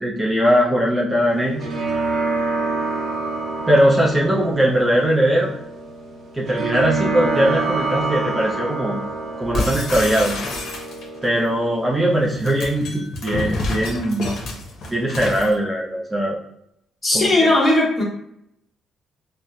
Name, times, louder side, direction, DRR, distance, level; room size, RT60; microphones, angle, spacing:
voice 1, 0.0-1.7 3.7-5.5 6.3-9.0 9.4-10.4 11.2-14.3 14.9-16.4 17.1-17.5, equal, 20° right, -3 dB, 0.6 m, -20 dB
sound 1, 1.3-12.2, right 3 dB, 75° right, 0.7 m, -27 dB
sound 2, 9.5-11.2 12.2-15.5, left 2 dB, 70° left, 0.7 m, -28 dB
voice 2, 17.0-18.0, left 2 dB, 30° left, -4 dB, 1.2 m, -17 dB
4.0 x 2.1 x 2.4 m, 0.77 s
cardioid pair, 90°, 0 cm